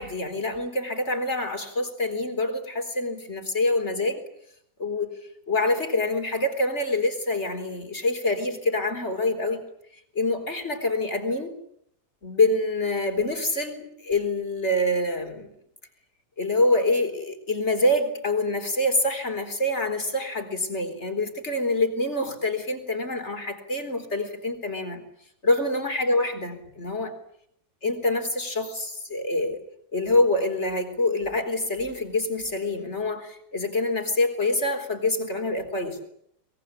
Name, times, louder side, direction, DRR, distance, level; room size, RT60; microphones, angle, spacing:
voice 1, 0.0-4.2 4.8-5.1 5.5-9.6 10.1-11.5 12.2-15.5 16.4-25.0 25.4-27.1 27.8-29.6 29.9-36.0, left 2 dB, 45° left, 7 dB, 4.4 m, -26 dB
24.5 x 22.0 x 9.9 m, 0.70 s
omnidirectional pair, 1.6 m